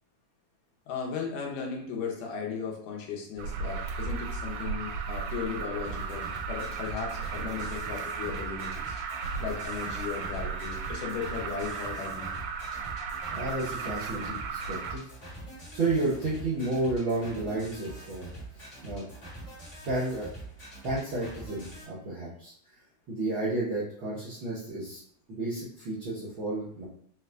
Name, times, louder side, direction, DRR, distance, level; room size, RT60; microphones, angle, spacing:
voice 1, 0.9-9.0 9.4-12.3, left 6 dB, 90° left, 0 dB, 2.5 m, -36 dB
Alarm, 3.4-14.9, right 5 dB, 80° right, 2.1 m, -35 dB
sound 1, 5.8-21.8, right 2 dB, 35° left, 1.2 m, -44 dB
voice 2, 13.3-15.0 15.7-18.3 18.8-19.1 19.9-20.3 20.8-22.5 23.1-25.0 25.3-26.8, right 2 dB, 65° right, -9 dB, 1.2 m, -31 dB
5.4 x 2.4 x 3.3 m, 0.62 s
omnidirectional pair, 3.6 m